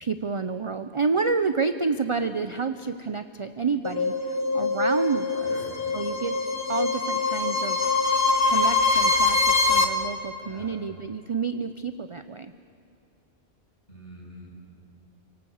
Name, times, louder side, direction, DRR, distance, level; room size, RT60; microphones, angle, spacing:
voice 1, 0.0-5.4 5.9-6.4 6.7-8.1 8.4-12.5, right 4 dB, 35° right, 10 dB, 0.6 m, -29 dB
sound 1, 3.8-9.8, left 3 dB, 55° left, 1.7 m, -23 dB
voice 2, 5.4-5.7 10.4-10.8 13.9-14.6, equal, 40° left, -5 dB, 8.0 m, -44 dB
29.0 x 18.0 x 7.1 m, 2.5 s
omnidirectional pair, 1.1 m